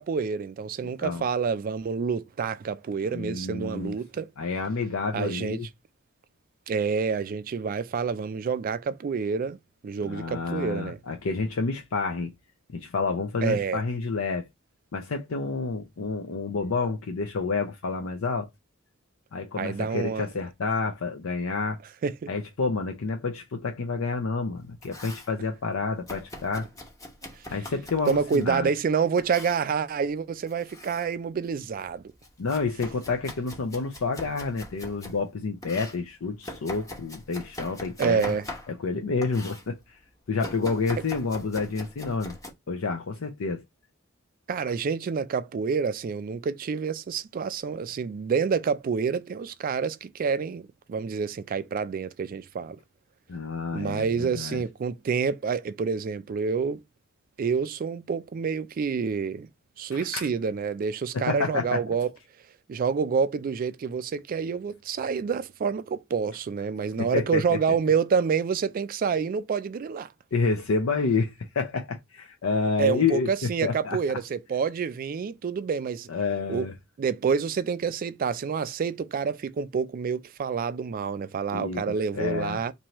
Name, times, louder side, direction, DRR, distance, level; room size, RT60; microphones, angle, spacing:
voice 1, 0.0-4.3 5.1-5.6 6.7-9.6 9.8-11.0 13.4-13.8 19.6-20.3 22.0-22.3 28.1-32.0 38.0-38.5 44.5-50.6 50.9-52.8 53.7-56.8 57.4-59.5 59.8-62.1 62.7-70.1 72.8-76.1 76.5-76.7 77.0-82.7, right 6 dB, 45° right, 0.3 m, -28 dB
voice 2, 3.1-3.9 4.4-5.7 10.0-12.3 12.7-14.5 14.9-18.5 19.3-21.8 22.3-26.7 27.5-28.7 32.4-38.4 38.7-39.8 40.3-42.3 42.7-43.6 53.3-54.6 59.9-60.3 61.1-61.8 67.0-67.6 70.3-74.0 76.1-76.7 81.5-81.8 82.1-82.6, left 4 dB, 80° left, 0.6 m, -29 dB
Domestic sounds home sounds, 24.6-25.3 26.1-28.5 29.2-29.7 30.4-31.1 31.5-35.2 35.6-38.9 39.2-39.7 40.4-42.5, left 1 dB, 15° left, 0.8 m, -42 dB
4.4 x 2.7 x 2.9 m
head